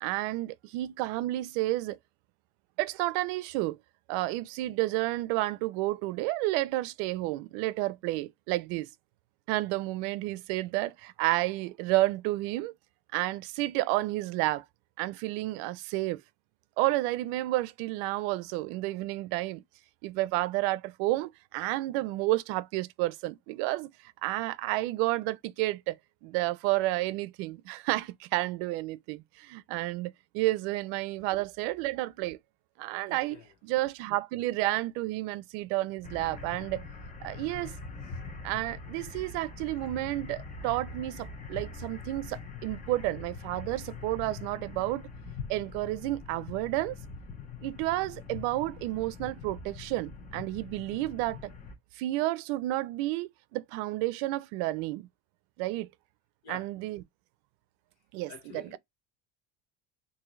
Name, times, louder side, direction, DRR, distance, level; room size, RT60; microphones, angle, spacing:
voice 1, 0.0-2.0 2.8-3.8 4.1-8.9 9.5-12.7 13.1-14.6 15.0-16.2 16.8-19.6 20.0-23.9 24.2-26.0 26.2-32.4 32.8-33.4 33.6-36.8 37.2-37.7 38.4-45.0 45.5-46.9 47.6-51.4 52.0-55.1 55.6-55.9 56.5-57.0 58.1-58.8, right 18 dB, 75° right, 0.5 m, -31 dB
voice 2, 33.1-33.5 38.0-38.2 56.4-56.7 58.3-58.8, left 8 dB, 55° left, 1.2 m, -48 dB
sound 1, 36.0-51.7, left 4 dB, 25° left, 0.7 m, -43 dB
3.5 x 2.7 x 3.1 m
cardioid pair, 145°, 33 cm